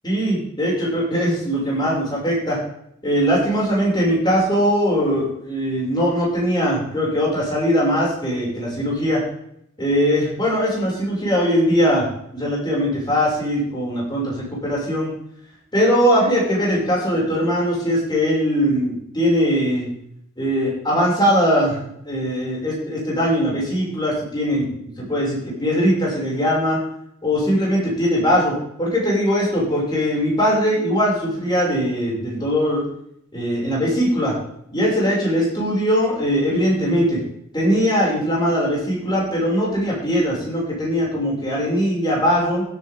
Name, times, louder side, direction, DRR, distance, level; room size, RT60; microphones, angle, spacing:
voice 1, 0.0-2.6 3.0-9.2 9.8-12.1 12.3-15.1 15.7-19.9 20.4-24.7 25.0-26.8 27.2-32.9 33.3-34.4 34.7-37.2 37.5-42.6, equal, 20° left, -5 dB, 6.2 m, -20 dB
15.5 x 9.6 x 3.7 m, 0.72 s
head